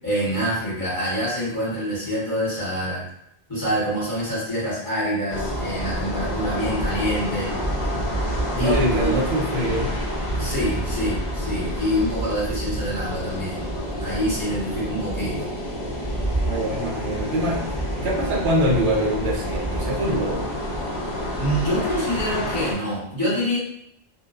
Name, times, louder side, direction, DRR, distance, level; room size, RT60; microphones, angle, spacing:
voice 1, 0.0-3.1 3.5-7.5 8.6-9.2 10.3-13.7 14.0-15.5 21.4-23.6, equal, 20° left, -11 dB, 1.2 m, -26 dB
sound 1, 5.3-22.7, equal, 45° left, 0.8 m, -28 dB
voice 2, 8.5-9.9 16.4-17.7 18.0-20.5, equal, 80° right, -3 dB, 0.9 m, -24 dB
2.9 x 2.0 x 2.4 m, 0.76 s
omnidirectional pair, 1.1 m